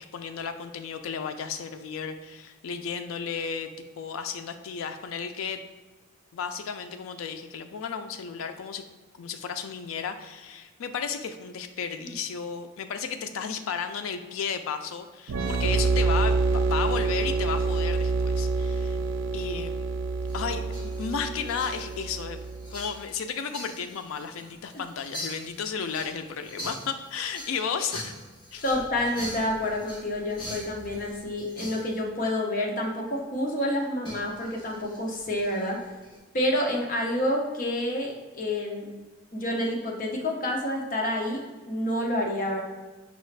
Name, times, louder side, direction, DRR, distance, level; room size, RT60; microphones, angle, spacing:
voice 1, 0.0-3.7 4.0-5.6 6.3-8.8 9.1-19.0 19.3-19.8 20.3-22.4 22.7-28.1 28.5-28.6, left 6 dB, 85° left, 8 dB, 0.4 m, -33 dB
sound 1, 15.3-22.8, right 3 dB, 75° right, 0.3 m, -27 dB
sound 2, 20.2-32.0 34.1-36.2, equal, 25° left, 0.9 m, -43 dB
voice 2, 28.6-35.8 36.3-38.9 39.3-42.6, left 1 dB, 40° left, 0 dB, 0.6 m, -28 dB
5.3 x 2.4 x 3.2 m, 1.3 s
head